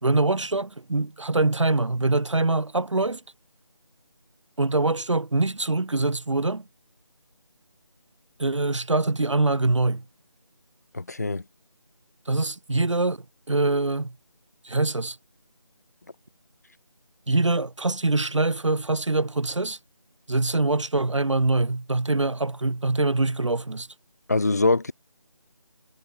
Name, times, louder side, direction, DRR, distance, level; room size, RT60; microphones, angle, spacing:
voice 1, 0.0-3.2 4.6-6.6 8.4-10.0 12.3-13.2 13.5-14.2 14.6-15.2 17.3-19.8 20.3-23.9, right 2 dB, 70° right, 2.0 m, -24 dB
voice 2, 10.9-11.4 24.3-24.9, left 2 dB, 30° left, 1.1 m, -23 dB
figure-of-eight pair, 175°, 16 cm